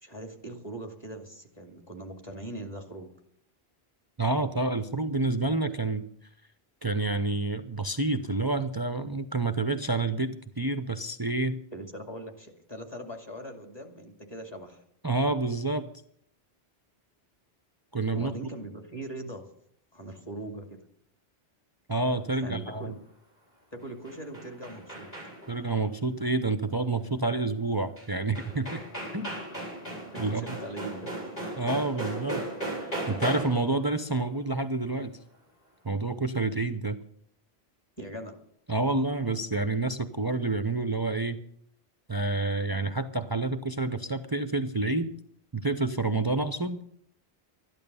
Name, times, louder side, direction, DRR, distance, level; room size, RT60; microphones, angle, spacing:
voice 1, 0.0-3.1 11.7-14.8 18.1-19.5 19.9-20.8 22.4-23.0 23.7-25.1 30.1-31.3 38.0-38.4, right 1 dB, 25° left, 3 dB, 2.4 m, -41 dB
voice 2, 4.2-6.0 6.8-11.6 15.0-15.9 17.9-18.3 21.9-22.9 25.5-28.8 29.1-29.3 30.2-30.5 31.6-32.4 32.8-35.2 35.8-37.0 38.7-41.4 42.1-45.1 45.5-46.8, right 2 dB, 25° right, 9 dB, 0.6 m, -28 dB
sound 1, 23.8-25.6 28.0-28.1 28.3-33.7, right 1 dB, 65° left, 8.1 m, -36 dB
13.0 x 11.0 x 6.9 m, 0.68 s
omnidirectional pair, 1.1 m